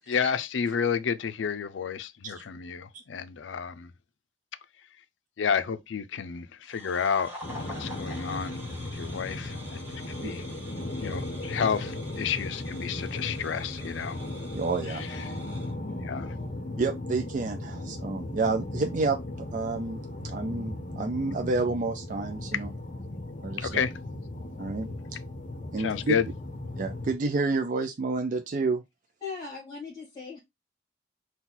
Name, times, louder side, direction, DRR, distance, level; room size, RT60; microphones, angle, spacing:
voice 1, 0.1-3.9 5.4-7.3 7.8-8.6 8.9-10.4 11.0-14.2 16.0-16.3 23.6-23.9 25.8-26.3, left 6 dB, 90° left, 0.4 m, -30 dB
sound 1, 6.6-15.7, equal, 10° right, 1.9 m, -46 dB
sound 2, 7.4-27.2, left 1 dB, 45° left, 0.8 m, -37 dB
voice 2, 14.5-15.0 16.8-22.7 23.4-23.7 24.6-25.2 25.7-26.1 26.8-28.8, right 3 dB, 45° right, 0.4 m, -30 dB
voice 3, 29.2-30.4, left 5 dB, 25° left, 1.8 m, -39 dB
4.3 x 2.3 x 3.8 m
head